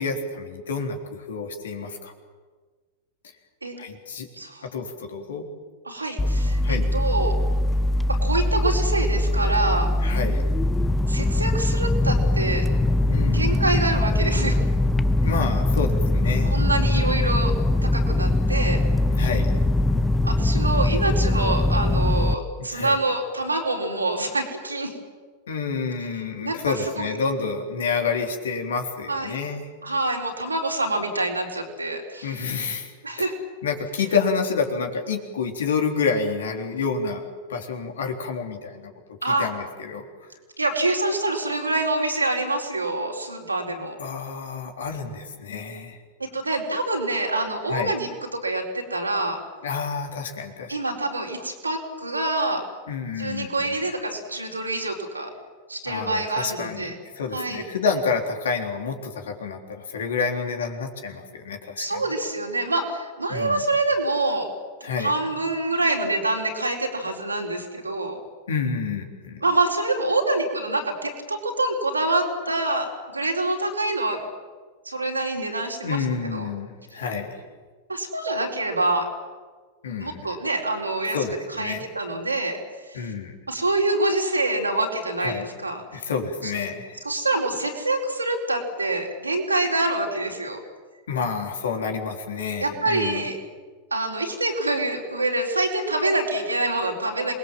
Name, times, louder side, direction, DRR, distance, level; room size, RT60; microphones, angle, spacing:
voice 1, 0.0-2.1 3.8-4.3 4.7-5.5 6.6-6.9 10.0-10.4 13.1-13.6 15.2-16.6 19.1-19.5 22.7-23.0 25.5-29.7 32.2-32.9 33.2-33.3 33.6-40.1 44.0-46.0 47.7-48.0 49.6-50.8 52.9-53.8 55.8-62.0 63.3-63.6 64.8-65.5 68.5-69.4 75.8-77.4 79.8-80.3 81.1-81.8 82.9-83.4 85.2-85.5 85.9-87.0 91.1-93.2, left 5 dB, 70° left, 4 dB, 3.6 m, -29 dB
voice 2, 5.8-7.4 8.2-9.9 11.1-12.7 13.3-14.6 16.5-17.5 17.8-18.8 20.2-24.9 26.4-27.1 29.1-29.4 29.8-32.4 33.0-33.3 39.2-39.5 40.6-44.0 46.2-49.4 50.7-52.6 53.2-55.3 55.7-56.9 57.3-57.6 61.8-64.5 65.0-68.2 69.4-74.2 74.9-76.0 76.3-76.5 77.9-79.1 80.0-81.2 81.6-82.6 82.9-83.1 83.5-85.8 86.4-86.5 87.0-90.6 92.6-93.4 93.9-97.3, right 2 dB, 90° right, 1 dB, 4.1 m, -26 dB
sound 1, 6.2-22.3, left 1 dB, 10° left, 0.8 m, -22 dB
27.5 x 20.5 x 7.5 m, 1.4 s
figure-of-eight pair, 90°, 0 cm